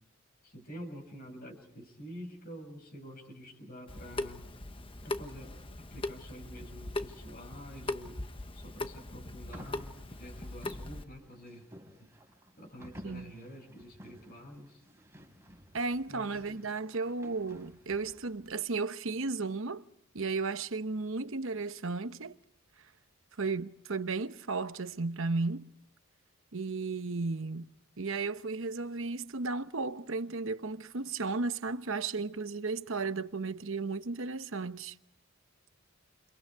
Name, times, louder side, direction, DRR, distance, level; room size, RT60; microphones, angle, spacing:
voice 1, 0.4-4.5 5.0-8.2 8.5-11.6 12.6-14.8 16.1-16.7, equal, 40° left, 7.0 m, -48 dB
Water tap faucet / Sink (filling or washing) / Drip, 3.9-11.0, left 2 dB, 25° left, 1.0 m, -40 dB
sound 1, 9.5-18.5, equal, 10° right, 5.3 m, -53 dB
voice 2, 15.7-19.8 20.1-22.4 23.4-25.7 26.5-27.7 28.0-35.0, right 3 dB, 60° right, 1.0 m, -34 dB
29.5 x 29.0 x 4.7 m
head